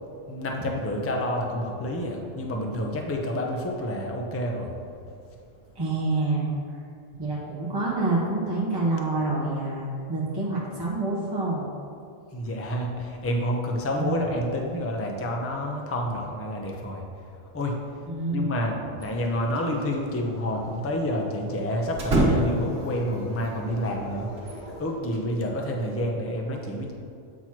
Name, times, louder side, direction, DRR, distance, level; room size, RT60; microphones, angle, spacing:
voice 1, 0.3-4.7 5.1-5.2 12.3-17.0 17.5-17.8 18.3-26.9, equal, 20° left, 1 dB, 0.3 m, -29 dB
voice 2, 5.7-6.5 7.2-11.7 14.0-14.4 18.1-18.7, right 2 dB, 20° right, -7 dB, 0.8 m, -27 dB
sound 1, 19.0-19.7 19.9-20.0 21.9-22.8 24.4-25.3, right 1 dB, 50° right, 1.4 m, -26 dB
sound 2, 19.3-24.9, left 1 dB, 35° left, 1.7 m, -45 dB
8.4 x 3.0 x 5.9 m, 2.5 s
omnidirectional pair, 1.4 m